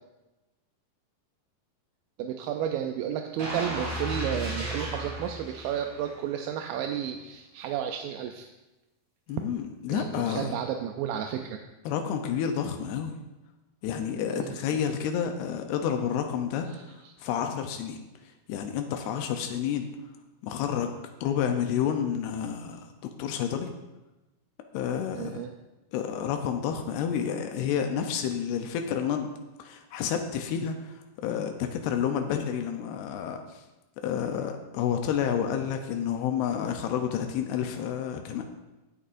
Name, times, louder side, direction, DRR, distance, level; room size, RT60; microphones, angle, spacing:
voice 1, 2.2-8.5 9.9-11.6 14.3-14.8 16.7-16.8 25.2-25.5, right 9 dB, 80° right, 4 dB, 2.1 m, -32 dB
sound 1, 3.4-6.3 6.7-6.9, right 1 dB, 45° right, 4.7 m, -34 dB
voice 2, 9.3-10.5 11.9-13.1 13.8-18.0 18.5-19.9 20.4-20.9 21.2-22.8 23.2-23.7 24.7-25.4 25.9-29.3 29.6-33.6 34.0-38.4, left 8 dB, 85° left, 5 dB, 2.8 m, -30 dB
16.0 x 9.7 x 2.6 m, 1.0 s
omnidirectional pair, 4.5 m